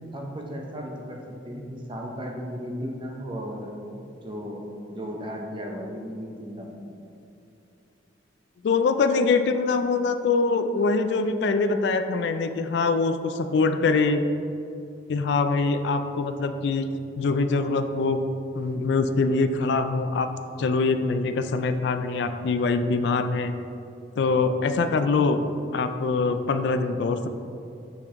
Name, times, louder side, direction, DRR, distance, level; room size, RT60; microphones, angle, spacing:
voice 1, 0.1-3.7 4.2-4.6 4.9-6.8, equal, 25° right, 0 dB, 0.6 m, -35 dB
voice 2, 8.6-14.2 15.1-16.9 17.1-18.2 18.5-20.3 20.6-23.5 24.2-25.4 25.7-27.3, left 4 dB, 60° left, 8 dB, 0.3 m, -23 dB
7.0 x 4.5 x 3.6 m, 2.7 s
head